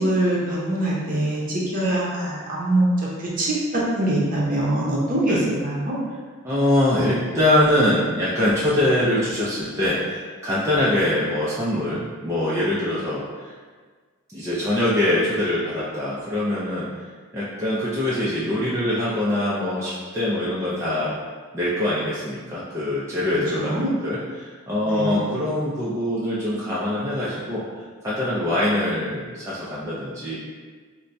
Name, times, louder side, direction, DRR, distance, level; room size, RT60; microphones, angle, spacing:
voice 1, 0.0-2.8 3.2-5.9 23.6-23.9 24.9-25.2, right 1 dB, 40° right, -5 dB, 0.7 m, -23 dB
voice 2, 6.4-13.5 14.3-16.9 17.3-21.2 21.5-27.6 28.0-30.4, left 1 dB, 15° right, -9 dB, 0.4 m, -23 dB
4.2 x 2.1 x 2.5 m, 1.5 s
head